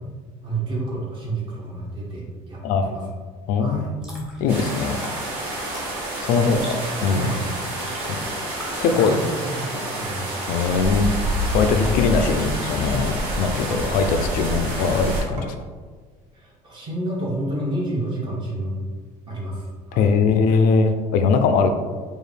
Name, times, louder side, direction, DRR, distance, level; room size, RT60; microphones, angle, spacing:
voice 1, 0.4-3.1 3.6-3.9 6.3-6.7 7.1-7.4 9.0-10.8 16.3-18.8 19.3-20.1, right 1 dB, 30° right, -3 dB, 1.1 m, -30 dB
voice 2, 3.5-5.1 6.2-7.3 8.1-8.2 8.8-9.2 10.5-11.1 11.5-15.5 19.9-21.7, left 5 dB, 65° left, 7 dB, 0.4 m, -21 dB
sound 1, 3.8-9.1, left 1 dB, 5° right, 0.8 m, -43 dB
sound 2, 4.5-15.2, right 1 dB, 70° right, 1.3 m, -28 dB
sound 3, 9.8-10.1 11.4-11.5 11.9-12.6 13.3-13.8 15.4-15.8, right 3 dB, 55° right, 0.8 m, -42 dB
4.7 x 2.5 x 3.2 m, 1.5 s
cardioid pair, 140°, 15 cm